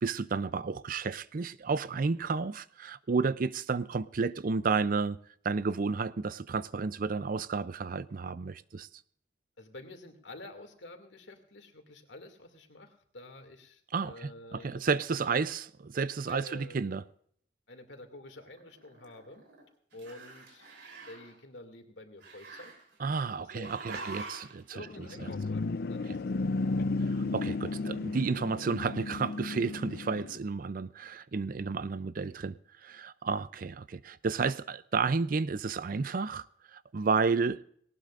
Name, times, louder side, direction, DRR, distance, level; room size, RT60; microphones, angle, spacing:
voice 1, 0.0-5.2 5.4-8.9 13.9-17.0 23.0-24.8 26.1-26.2 27.1-36.5 36.7-37.6, right 4 dB, 50° right, 0.5 m, -31 dB
voice 2, 9.6-14.8 15.1-15.2 16.3-17.0 17.7-19.4 19.9-22.7 23.4-24.3 24.7-27.1, left 2 dB, 80° left, 2.4 m, -49 dB
Growling, 18.4-19.6 19.9-21.3 22.2-23.2 23.6-24.6, right 3 dB, 70° right, 3.6 m, -45 dB
sound 1, 24.8-30.4, left 3 dB, 60° left, 0.5 m, -33 dB
19.0 x 18.5 x 2.5 m
head